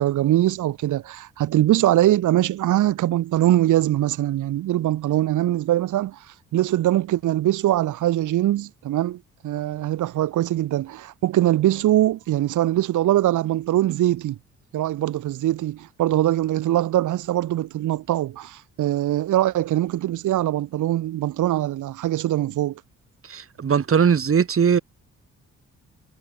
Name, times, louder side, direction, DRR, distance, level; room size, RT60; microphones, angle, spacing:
voice 1, 0.0-6.2 6.5-14.4 14.7-22.8, right 13 dB, 80° right, 2.8 m, -22 dB
voice 2, 23.3-24.8, right 7 dB, 45° right, 5.7 m, -19 dB
cardioid pair, 90°, 30 cm